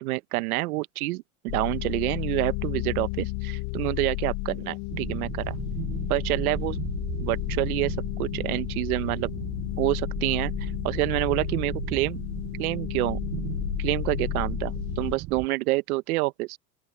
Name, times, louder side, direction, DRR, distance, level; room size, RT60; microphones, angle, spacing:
voice 1, 0.0-5.6 6.1-6.8 7.2-9.3 9.8-12.2 12.6-13.2 13.8-16.6, right 20 dB, 85° right, 0.9 m, -28 dB
sound 1, 1.5-15.2, left 26 dB, 50° left, 0.5 m, -32 dB
sound 2, 4.9-15.5, right 18 dB, 40° right, 0.7 m, -37 dB
open air
supercardioid pair, 125°, 43 cm